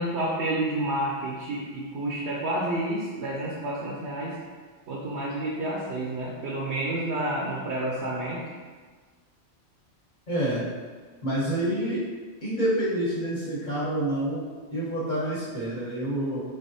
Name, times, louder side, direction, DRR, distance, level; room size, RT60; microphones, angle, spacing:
voice 1, 0.0-4.4 4.9-8.4, right 1 dB, 75° right, -4 dB, 0.9 m, -29 dB
voice 2, 10.3-10.6 11.2-12.0 12.4-14.4 14.7-16.4, right 1 dB, 45° left, -9 dB, 1.2 m, -27 dB
3.8 x 3.3 x 2.7 m, 1.5 s
omnidirectional pair, 1.2 m